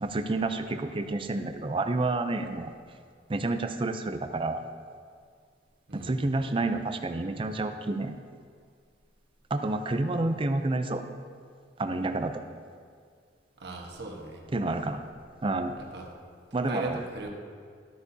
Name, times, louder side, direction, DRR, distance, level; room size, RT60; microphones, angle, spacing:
voice 1, 0.0-2.7 3.3-4.6 5.9-8.2 9.5-11.0 11.8-12.4 14.5-15.0 15.4-15.7 16.5-17.0, right 2 dB, 30° right, 8 dB, 0.5 m, -29 dB
voice 2, 5.9-6.2 13.6-14.4 15.7-16.1 16.7-17.3, right 2 dB, 65° right, 0 dB, 1.3 m, -39 dB
12.5 x 8.2 x 2.8 m, 2.1 s
head